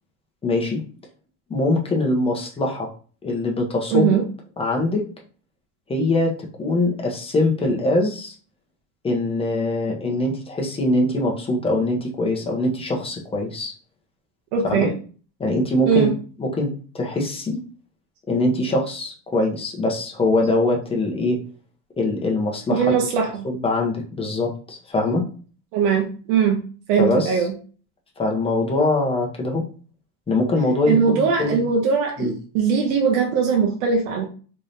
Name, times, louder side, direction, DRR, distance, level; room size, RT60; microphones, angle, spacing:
voice 1, 0.4-0.8 1.5-2.9 3.2-4.1 4.6-5.0 5.9-6.3 6.6-8.3 9.0-13.7 14.6-14.9 15.4-16.1 16.4-17.6 18.3-21.4 22.0-22.9 23.4-25.2 27.0-27.4 28.2-29.6 30.3-31.6 32.2-32.3, left 2 dB, 15° left, 1 dB, 0.9 m, -22 dB
voice 2, 3.9-4.2 14.5-14.9 15.9-16.1 22.7-23.3 25.7-26.6 26.9-27.5 30.9-34.3, right 6 dB, 80° right, 1 dB, 1.0 m, -20 dB
3.6 x 3.2 x 2.7 m, 0.39 s
cardioid pair, 135°, 37 cm